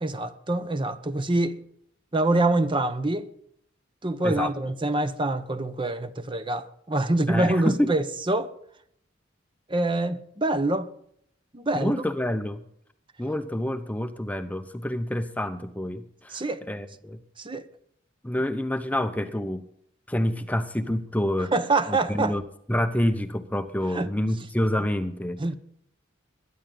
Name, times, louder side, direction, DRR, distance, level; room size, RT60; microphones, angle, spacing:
voice 1, 0.0-1.6 2.1-3.3 4.0-8.5 9.7-10.9 11.5-11.9 16.3-16.6 17.4-17.6 21.5-22.4 23.9-24.1 25.4-25.6, right 2 dB, 25° right, 0.8 m, -25 dB
voice 2, 7.3-7.9 11.7-12.6 13.2-16.4 16.7-17.2 18.2-19.7 20.1-21.5 21.9-22.4 22.7-25.4, left 1 dB, 10° left, 0.7 m, -27 dB
22.0 x 10.5 x 3.9 m
head